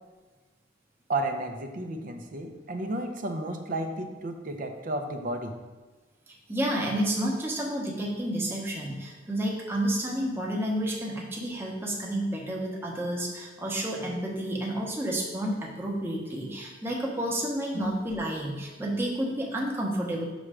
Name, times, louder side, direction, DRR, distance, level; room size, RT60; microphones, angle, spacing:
voice 1, 1.1-5.5 17.7-17.9, right 1 dB, 45° right, 5 dB, 0.6 m, -32 dB
voice 2, 6.3-20.3, right 1 dB, 10° right, -2 dB, 0.9 m, -30 dB
6.2 x 3.2 x 4.8 m, 1.3 s
head